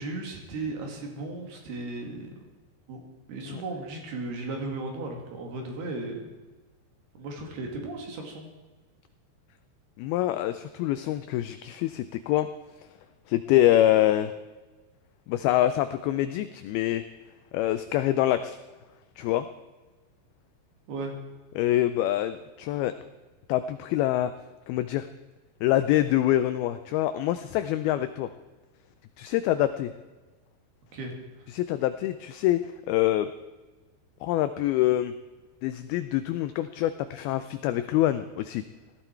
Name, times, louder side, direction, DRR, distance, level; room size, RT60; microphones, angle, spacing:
voice 1, 0.0-2.3 2.9-3.0 3.3-6.3 7.2-8.5 20.9-21.1 30.9-31.1, right 2 dB, 65° right, 1 dB, 4.1 m, -35 dB
voice 2, 10.0-12.5 13.3-14.3 15.3-17.0 17.5-18.6 19.2-19.5 21.6-22.9 23.5-24.3 24.7-25.1 25.6-28.3 29.2-29.9 31.5-32.6 32.9-33.3 34.2-35.1 35.6-38.6, left 13 dB, 85° left, 11 dB, 2.2 m, -25 dB
18.0 x 14.0 x 4.5 m, 1.2 s
omnidirectional pair, 4.9 m